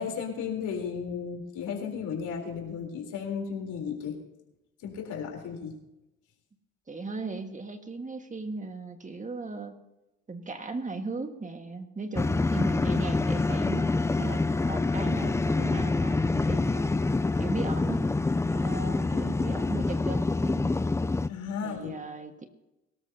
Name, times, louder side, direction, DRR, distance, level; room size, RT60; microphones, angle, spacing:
voice 1, 0.0-4.2 4.8-5.7 21.3-21.9, left 6 dB, 80° left, 2 dB, 3.6 m, -34 dB
voice 2, 6.9-9.8 10.3-13.9 14.2-16.9 17.4-18.1 18.5-20.7 21.6-22.5, right 3 dB, 25° right, 6 dB, 1.6 m, -37 dB
sound 1, 12.2-21.3, left 3 dB, 10° left, 0.3 m, -26 dB
22.5 x 13.0 x 2.8 m, 0.96 s
cardioid pair, 90°, 30 cm